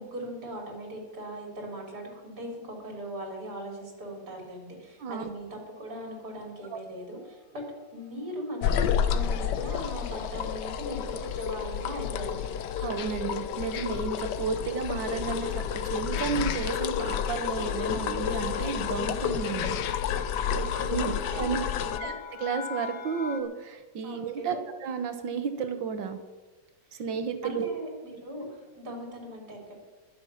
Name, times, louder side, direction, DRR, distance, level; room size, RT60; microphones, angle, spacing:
voice 1, 0.0-7.6 7.9-12.5 20.5-22.1 24.0-24.6 26.9-27.0 27.4-29.7, equal, 60° right, 0 dB, 4.1 m, -39 dB
sound 1, 5.3-5.8 6.5-6.9 7.2-7.4 7.6-23.4, left 6 dB, 90° left, 1.9 m, -46 dB
sound 2, 8.6-22.0, left 8 dB, 75° left, 1.3 m, -30 dB
voice 2, 12.8-19.8 20.9-21.6 22.0-22.1 22.4-24.6 24.8-26.2 27.0-27.8, right 6 dB, 85° right, 8 dB, 1.9 m, -32 dB
21.5 x 7.7 x 5.8 m, 1.2 s
omnidirectional pair, 2.0 m